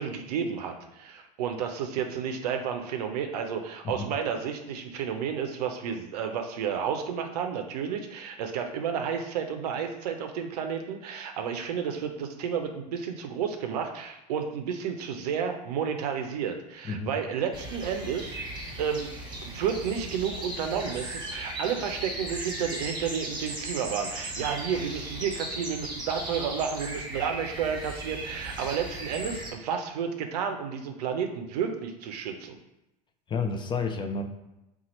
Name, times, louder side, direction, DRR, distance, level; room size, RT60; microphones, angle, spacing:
voice 1, 0.0-18.4 18.8-19.1 19.4-32.6, right 7 dB, 70° right, 5 dB, 0.5 m, -31 dB
voice 2, 16.8-17.1 33.3-34.2, left 4 dB, 25° left, 5 dB, 0.4 m, -30 dB
sound 1, 17.5-29.5, right 1 dB, 20° right, 1.2 m, -37 dB
2.8 x 2.3 x 4.1 m, 0.91 s
hypercardioid pair, 85°, 21 cm